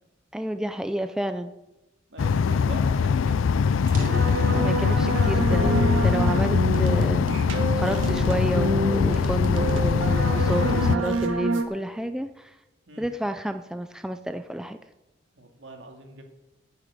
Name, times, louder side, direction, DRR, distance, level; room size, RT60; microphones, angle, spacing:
voice 1, 0.3-1.5 2.5-2.7 4.5-12.5 13.0-14.8, right 1 dB, 5° right, 8 dB, 0.4 m, -30 dB
voice 2, 2.1-3.7 12.9-13.1 15.4-16.2, right 2 dB, 65° right, 4 dB, 2.2 m, -42 dB
sound 1, 2.2-11.0, left 6 dB, 85° left, 0.4 m, -22 dB
sound 2, 3.9-5.3 5.9-7.1 7.7-8.0 8.6-10.7, equal, 45° right, 2.3 m, -43 dB
sound 3, 3.9-11.6, right 2 dB, 85° right, 1.6 m, -27 dB
10.0 x 7.2 x 9.4 m, 0.98 s
head